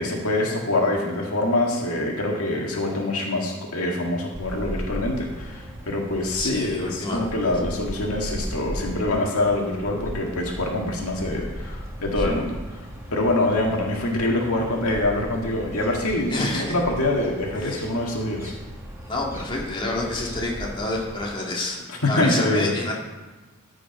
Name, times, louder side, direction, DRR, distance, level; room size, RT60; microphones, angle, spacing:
voice 1, 0.0-12.8 13.1-18.5 21.9-22.7, left 2 dB, 85° left, 0 dB, 1.8 m, -25 dB
sound 1, 4.3-21.3, equal, 15° right, 1.4 m, -37 dB
voice 2, 6.4-7.5 16.3-16.8 17.6-17.8 19.0-22.9, left 2 dB, 25° left, -3 dB, 1.9 m, -28 dB
13.5 x 5.1 x 5.3 m, 1.2 s
head